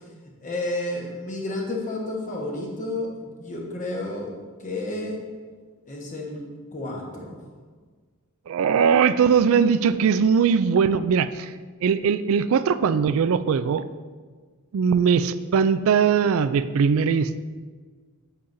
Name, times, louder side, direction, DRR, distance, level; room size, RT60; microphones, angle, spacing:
voice 1, 0.4-4.3 4.6-5.2 5.9-6.4 6.7-7.4, left 2 dB, 35° left, -1 dB, 1.1 m, -31 dB
voice 2, 8.5-11.5 11.8-13.8 14.7-17.4, right 6 dB, 65° right, 13 dB, 0.3 m, -20 dB
8.5 x 7.2 x 2.6 m, 1.5 s
head